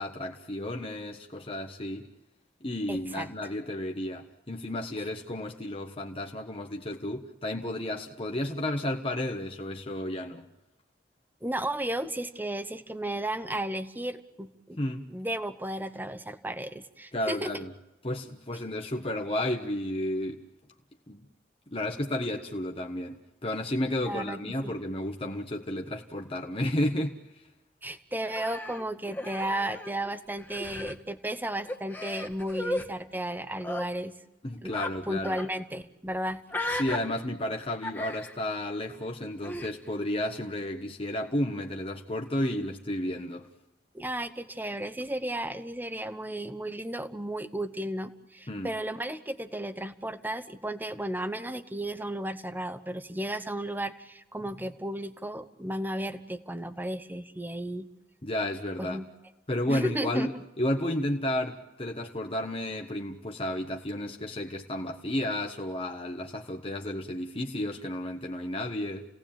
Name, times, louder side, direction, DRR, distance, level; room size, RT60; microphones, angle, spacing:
voice 1, 0.0-2.1 2.6-10.5 14.8-15.1 17.1-17.7 18.0-20.4 21.1-21.2 21.7-27.2 34.4-35.4 36.7-43.5 48.5-48.7 58.2-59.0 59.5-60.3 60.6-69.1, left 1 dB, 30° left, 1.4 m, -32 dB
voice 2, 2.9-3.3 11.4-14.8 15.1-17.5 24.0-24.7 27.8-34.1 34.6-34.7 35.1-36.4 43.9-57.9 58.8-59.0 59.7-60.3, right 1 dB, 10° right, 1.2 m, -34 dB
Human voice, 28.3-30.1 30.4-31.0 31.7-32.9 33.6-33.9 34.7-34.9 35.2-35.5 36.5-37.0 37.8-38.4 39.4-39.7, left 1 dB, 10° left, 1.6 m, -35 dB
29.5 x 17.5 x 8.9 m
head